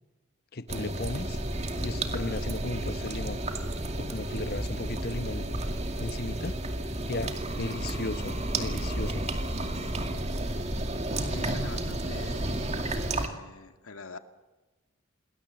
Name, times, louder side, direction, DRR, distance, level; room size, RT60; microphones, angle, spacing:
voice 1, 0.5-1.4 1.8-3.4 4.0-5.5 6.0-6.6 7.1-9.3, left 2 dB, 45° left, 13 dB, 0.9 m, -35 dB
sound 1, 0.7-13.3, right 1 dB, 30° right, 2.3 m, -32 dB
sound 2, 3.0-9.8 10.1-10.7 11.0-11.1, equal, 10° right, 6.0 m, -54 dB
voice 2, 11.3-12.5 13.1-14.2, left 3 dB, 85° left, 7 dB, 2.2 m, -44 dB
27.5 x 20.5 x 7.6 m, 1.2 s
head